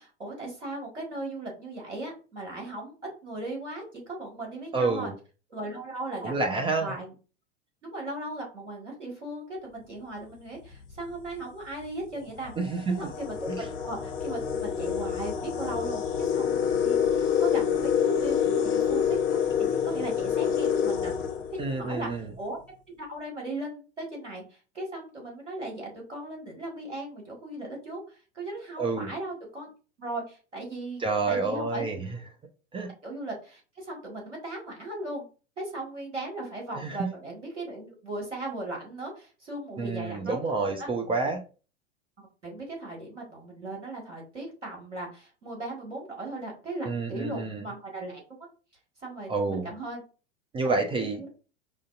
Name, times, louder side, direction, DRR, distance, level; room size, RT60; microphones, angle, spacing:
voice 1, 0.0-2.9 3.2-5.1 5.5-7.1 7.8-12.5 13.0-19.4 19.8-21.1 21.7-22.1 22.4-22.6 23.0-29.7 30.0-31.0 31.3-31.8 33.0-35.2 35.6-40.9 42.2-48.2 49.0-50.0 51.2-51.3, right 2 dB, 85° right, -1 dB, 1.6 m, -37 dB
voice 2, 4.7-5.1 6.2-6.9 12.6-13.1 13.5-13.7 21.6-22.3 28.8-29.1 31.0-32.0 32.7-32.9 36.7-37.1 39.8-41.4 46.8-47.7 49.3-49.7 50.5-51.2, right 3 dB, 15° right, 3 dB, 0.4 m, -29 dB
sound 1, 10.7-11.0 11.8-11.9 12.3-22.1, left 8 dB, 55° left, 0.8 m, -27 dB
4.9 x 2.6 x 2.4 m, 0.35 s
figure-of-eight pair, 85°, 35 cm